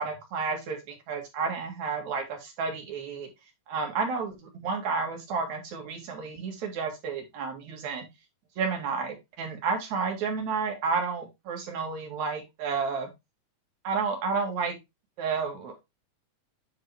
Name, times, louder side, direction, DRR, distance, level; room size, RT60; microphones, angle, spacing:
voice 1, 0.0-3.3 3.7-8.1 8.6-13.1 13.8-14.8 15.2-15.8, right 5 dB, 70° right, 3 dB, 3.3 m, -31 dB
9.2 x 4.9 x 3.4 m, 0.22 s
omnidirectional pair, 3.5 m